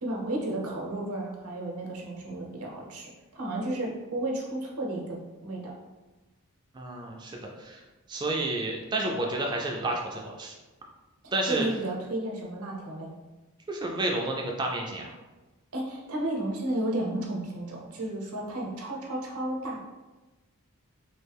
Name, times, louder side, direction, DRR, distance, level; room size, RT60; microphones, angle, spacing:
voice 1, 0.0-5.7 11.5-13.1 15.7-19.8, right 1 dB, 85° right, -1 dB, 0.8 m, -33 dB
voice 2, 6.7-7.8 8.1-10.6 11.3-11.7 13.7-15.1, right 2 dB, 20° right, 0 dB, 0.3 m, -30 dB
3.1 x 2.3 x 3.4 m, 1.1 s
head